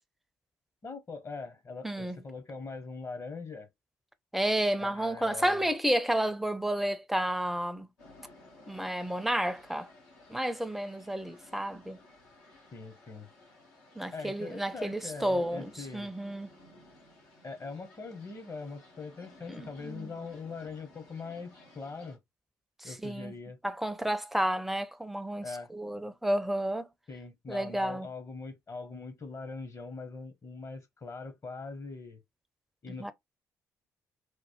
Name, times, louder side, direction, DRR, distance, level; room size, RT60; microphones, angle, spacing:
voice 1, 0.8-3.7 4.8-5.7 12.7-13.3 14.1-16.1 17.4-22.2 22.8-23.6 25.4-25.7 27.1-32.2 32.8-33.1, left 4 dB, 35° left, 0.9 m, -42 dB
voice 2, 1.8-2.2 4.3-7.9 8.7-9.9 10.3-12.0 14.0-16.5 19.5-20.1 22.8-23.3 23.6-26.9 27.5-28.1 33.0-33.1, right 1 dB, ahead, 0.5 m, -31 dB
washington naturalhistory fakestorm, 8.0-22.2, left 2 dB, 85° left, 1.1 m, -56 dB
3.1 x 2.1 x 2.8 m
hypercardioid pair, 45°, 9 cm